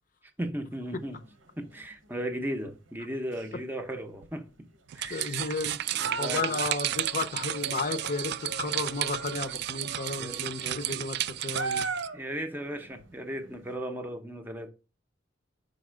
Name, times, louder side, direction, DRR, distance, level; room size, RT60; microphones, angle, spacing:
voice 1, 0.4-1.2 1.6-4.7 4.9-5.5 5.9-6.6 10.2-10.8 12.1-14.7, right 1 dB, 10° right, 0.6 m, -36 dB
sound 1, 0.8-1.9 2.2-2.7 3.3-3.5 4.2-4.3 4.7-13.8, right 4 dB, 90° right, 1.0 m, -39 dB
sound 2, 4.9-12.1, right 13 dB, 60° right, 0.3 m, -33 dB
voice 2, 5.1-5.8 6.2-11.8, left 3 dB, 45° left, 0.6 m, -33 dB
5.3 x 4.1 x 4.9 m
head